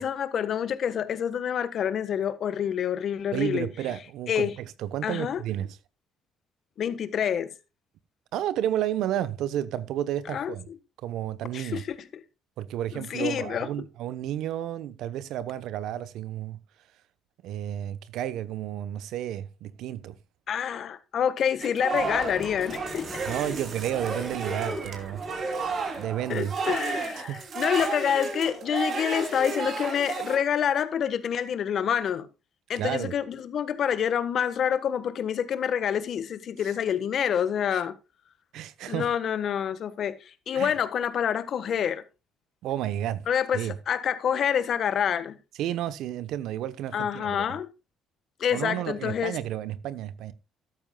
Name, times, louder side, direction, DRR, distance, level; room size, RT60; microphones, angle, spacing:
voice 1, 0.0-3.7 4.3-4.5 5.0-5.4 6.8-7.5 10.3-10.7 11.5-12.2 12.9-13.7 20.5-23.1 26.3-32.3 32.7-37.9 38.8-42.0 43.3-45.3 46.9-47.7 48.4-49.4, left 8 dB, 55° left, 1.3 m, -27 dB
voice 2, 3.3-5.8 8.3-10.7 11.0-11.8 12.6-16.6 17.4-20.2 23.3-25.6 26.0-26.5 27.2-27.4 32.7-33.1 37.7-37.8 38.5-39.1 40.5-40.8 42.6-43.3 43.5-43.7 45.6-47.5 48.5-50.3, right 11 dB, 75° right, 0.9 m, -31 dB
sound 1, 21.6-30.4, right 4 dB, 50° right, 3.0 m, -32 dB
sound 2, 21.9-26.7, left 1 dB, 5° left, 4.4 m, -43 dB
13.5 x 12.5 x 2.3 m
supercardioid pair, 85°, 0 cm